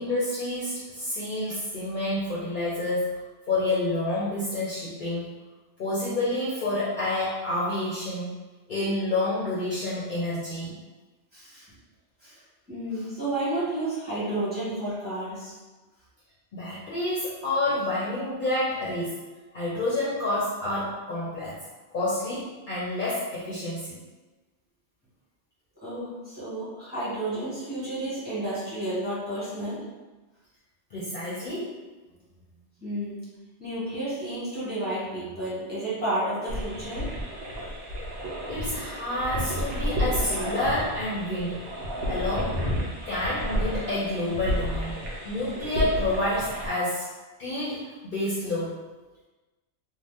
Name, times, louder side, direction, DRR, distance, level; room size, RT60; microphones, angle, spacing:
voice 1, 0.0-3.2 3.5-5.3 5.8-8.3 8.7-10.8 16.5-19.2 19.5-21.6 21.9-24.0 30.9-31.7 38.5-41.6 42.1-42.6 43.1-45.0 45.2-47.1 47.4-48.8, left 1 dB, 55° left, -8 dB, 0.7 m, -29 dB
voice 2, 11.3-11.7 12.2-12.4 12.7-15.6 25.8-29.8 32.8-33.2 33.6-37.1 42.0-42.1, right 1 dB, 10° right, -11 dB, 1.3 m, -31 dB
sound 1, 36.5-46.7, equal, 65° right, 0.8 m, -31 dB
2.7 x 2.0 x 3.3 m, 1.2 s
omnidirectional pair, 1.2 m